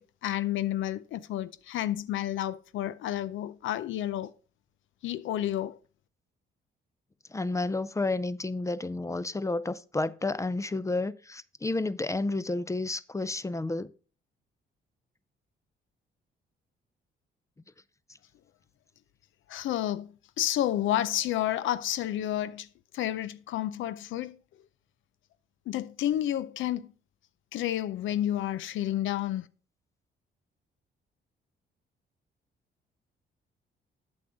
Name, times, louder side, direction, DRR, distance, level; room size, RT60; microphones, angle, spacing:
voice 1, 0.0-4.3 5.0-5.8 19.5-20.1 20.4-22.7 22.9-24.4 25.7-26.8 27.5-29.4, left 12 dB, 75° left, 0.5 m, -30 dB
voice 2, 7.3-13.9, left 2 dB, 15° left, 0.5 m, -31 dB
8.4 x 7.1 x 3.9 m
cardioid pair, 90°, 20 cm